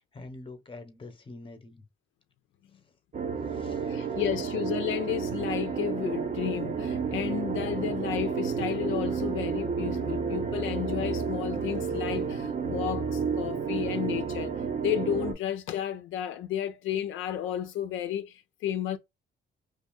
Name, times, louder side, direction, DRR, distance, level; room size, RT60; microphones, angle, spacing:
voice 1, 0.0-1.9 2.7-3.0 3.4-4.2, left 2 dB, 25° left, 0.9 m, -46 dB
sound 1, 3.1-15.3, right 5 dB, 40° right, 0.7 m, -31 dB
voice 2, 3.9-19.0, left 10 dB, 80° left, 0.4 m, -32 dB
2.6 x 2.5 x 2.5 m
cardioid pair, 90°, 20 cm